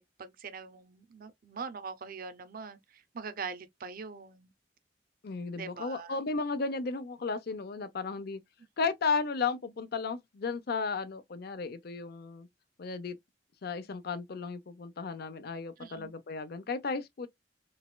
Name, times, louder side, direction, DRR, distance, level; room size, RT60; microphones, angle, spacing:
voice 1, 0.0-4.5 5.5-6.2 15.8-16.1, right 5 dB, 50° right, 0.5 m, -43 dB
voice 2, 5.2-8.4 8.8-12.5 12.8-13.2 13.6-17.3, left 4 dB, 55° left, 0.5 m, -34 dB
4.0 x 2.3 x 2.2 m
head